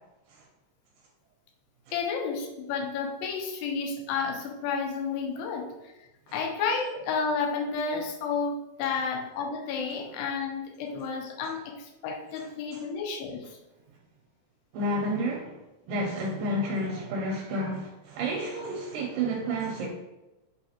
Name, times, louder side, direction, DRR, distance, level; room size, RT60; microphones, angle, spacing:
voice 1, 1.9-5.7 6.3-11.8 12.0-13.4, left 5 dB, 90° left, 2 dB, 2.4 m, -31 dB
voice 2, 14.7-15.5 15.9-19.9, right 1 dB, 80° right, -1 dB, 2.0 m, -30 dB
5.6 x 2.6 x 2.8 m, 0.98 s
omnidirectional pair, 4.1 m